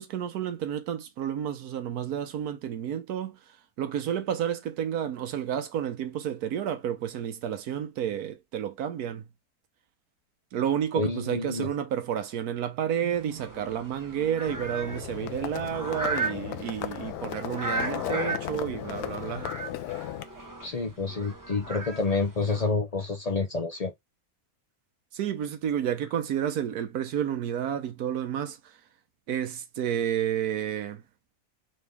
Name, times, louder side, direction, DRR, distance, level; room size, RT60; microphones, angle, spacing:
voice 1, 0.0-3.4 3.8-9.2 10.5-19.5 25.1-28.6 29.3-31.0, right 9 dB, 85° right, 1.3 m, -30 dB
voice 2, 10.9-11.7 20.6-23.9, left 4 dB, 50° left, 0.4 m, -28 dB
sound 1, 13.1-22.6, right 3 dB, 20° right, 0.5 m, -37 dB
Livestock farm animals working animals, 14.5-20.2, left 13 dB, 90° left, 1.1 m, -35 dB
3.9 x 3.1 x 3.4 m
omnidirectional pair, 1.6 m